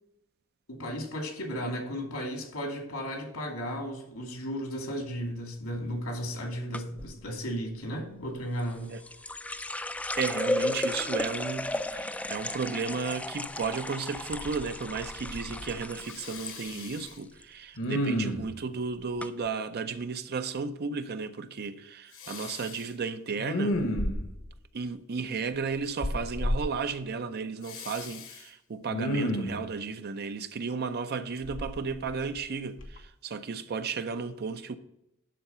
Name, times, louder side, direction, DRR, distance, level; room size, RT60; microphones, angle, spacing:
voice 1, 0.7-9.0, equal, 85° left, 2.7 m, -35 dB
sound 1, 6.7-7.1 8.6-16.5 16.8-17.4 17.8-18.1 18.8-18.9 19.2-19.3, left 1 dB, 5° left, 0.3 m, -34 dB
voice 2, 10.2-23.8 24.7-34.8, right 5 dB, 50° right, 0.5 m, -34 dB
Respiratory sounds, 13.6-13.7 14.2-14.7 15.0-15.7 16.1-17.1 17.8-18.6 22.2-22.8 23.4-24.4 26.0-26.6 27.7-28.4 28.9-29.6 31.4-32.4 32.8-33.0, equal, 65° left, 1.2 m, -32 dB
12.0 x 4.0 x 5.5 m
head